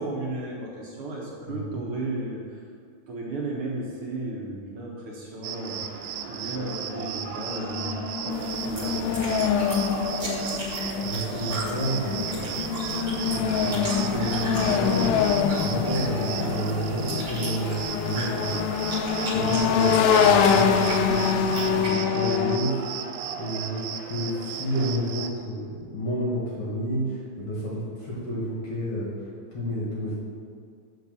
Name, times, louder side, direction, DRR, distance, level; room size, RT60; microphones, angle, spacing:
voice 1, 0.0-2.6 3.1-9.5 12.9-13.0 19.3-19.5, right 2 dB, 65° right, -4 dB, 1.4 m, -34 dB
voice 2, 1.5-1.8 11.0-12.6 13.0-18.6 19.3-22.8 23.4-25.7 25.9-30.1, equal, 50° left, -5 dB, 1.8 m, -30 dB
Cricket, 5.4-25.3, right 8 dB, 80° right, 2.1 m, -35 dB
sound 1, 6.2-6.3 6.5-22.6, left 7 dB, 80° left, 2.2 m, -25 dB
sound 2, 8.3-21.9, right 1 dB, 30° right, 1.5 m, -38 dB
7.3 x 4.6 x 6.9 m, 2.2 s
omnidirectional pair, 4.1 m